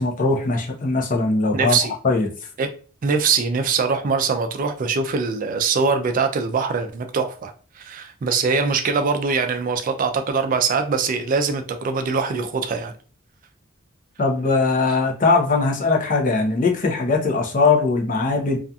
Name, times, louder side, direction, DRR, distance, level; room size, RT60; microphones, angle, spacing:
voice 1, 0.0-1.8 2.0-2.3 14.2-18.6, left 3 dB, 40° left, 0.5 m, -20 dB
voice 2, 1.5-1.9 2.6-2.7 3.0-12.9 14.9-15.0, right 5 dB, 40° right, 0.3 m, -22 dB
2.7 x 2.4 x 2.2 m
head